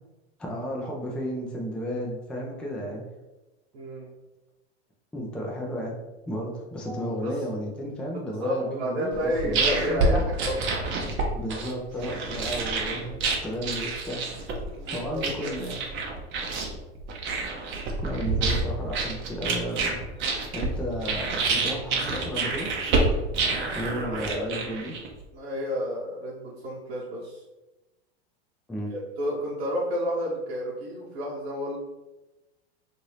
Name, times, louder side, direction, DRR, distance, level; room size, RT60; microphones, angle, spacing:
voice 1, 0.4-3.0 5.1-5.9 6.3-10.2 11.2-14.5 14.8-15.8 18.0-20.0 20.5-22.7 23.7-25.0 28.7-28.9, equal, 5° left, -2 dB, 0.4 m, -33 dB
voice 2, 3.7-4.1 6.8-7.3 8.4-10.7 14.7-15.5 23.9-24.5 25.3-27.4 28.9-31.8, equal, 80° right, -7 dB, 1.0 m, -31 dB
sound 1, 9.1-25.2, right 3 dB, 35° right, 0.7 m, -28 dB
2.7 x 2.6 x 3.1 m, 1.1 s
hypercardioid pair, 110°, 33 cm